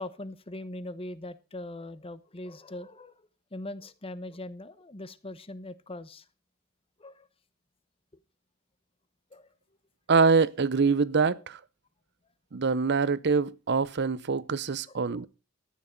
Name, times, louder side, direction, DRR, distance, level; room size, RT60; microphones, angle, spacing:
voice 1, 0.0-6.2 7.0-7.3 9.3-9.5 14.9-15.3, left 1 dB, 25° left, 0.9 m, -41 dB
voice 2, 10.1-11.6 12.5-15.3, right 4 dB, 50° right, 0.6 m, -24 dB
13.5 x 9.5 x 5.2 m
head